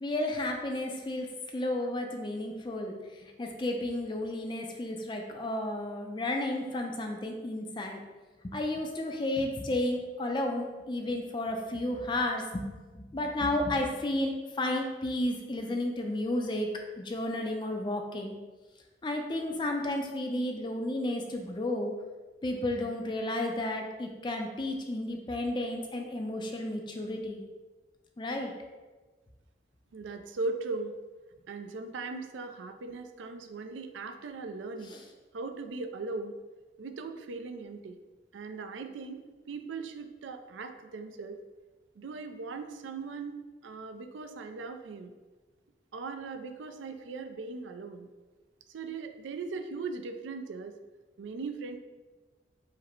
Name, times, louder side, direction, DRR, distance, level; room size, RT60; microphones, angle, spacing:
voice 1, 0.0-1.3 1.5-3.0 3.2-8.0 8.4-12.6 12.9-14.3 14.6-16.7 17.0-18.4 19.0-21.9 22.4-27.4 28.2-28.5 34.9-35.0, left 1 dB, 25° left, 2 dB, 0.4 m, -32 dB
voice 2, 29.9-31.0 31.5-34.9 35.3-36.3 36.8-38.0 38.3-39.2 39.5-41.4 42.0-45.1 45.9-48.1 48.7-50.7 51.2-51.8, right 3 dB, 90° right, 7 dB, 0.4 m, -39 dB
4.8 x 2.1 x 4.4 m, 1.3 s
head